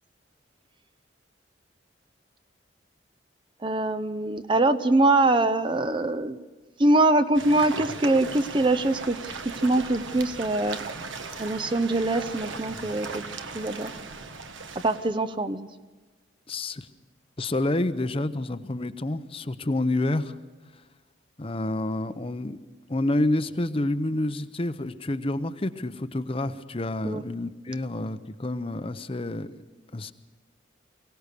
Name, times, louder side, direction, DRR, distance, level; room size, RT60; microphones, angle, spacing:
voice 1, 3.6-6.4 6.8-9.2 9.6-10.8 11.4-13.3 13.5-13.9 14.8-15.7 27.0-27.2, right 2 dB, 25° right, 11 dB, 0.6 m, -23 dB
sound 1, 7.3-15.1, right 4 dB, 75° right, 1.4 m, -38 dB
voice 2, 16.5-16.9 17.4-20.3 21.4-22.6 22.9-29.6 29.9-30.1, left 1 dB, 30° left, 11 dB, 0.7 m, -28 dB
23.0 x 17.5 x 6.7 m, 1.3 s
head